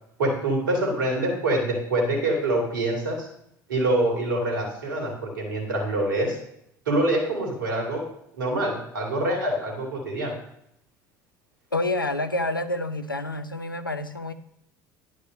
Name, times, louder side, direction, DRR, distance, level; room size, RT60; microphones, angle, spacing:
voice 1, 0.2-3.3 3.7-6.4 6.9-8.0 8.3-10.3, right 1 dB, 75° right, 0 dB, 2.6 m, -25 dB
voice 2, 11.7-14.3, left 2 dB, 90° left, 11 dB, 0.5 m, -28 dB
10.5 x 4.8 x 6.4 m, 0.76 s
figure-of-eight pair, 65°, 11 cm